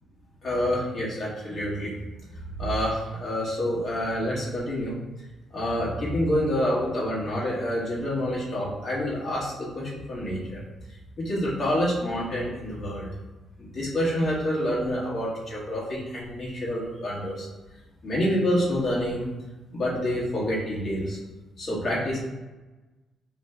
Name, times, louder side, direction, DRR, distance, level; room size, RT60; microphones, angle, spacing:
voice 1, 0.4-1.9 2.5-4.9 5.5-10.6 11.2-13.1 13.6-17.5 18.0-19.3 19.7-21.2 21.6-22.2, equal, 50° left, -7 dB, 1.4 m, -27 dB
3.1 x 2.1 x 3.4 m, 1.1 s
cardioid pair, 90°, 0 cm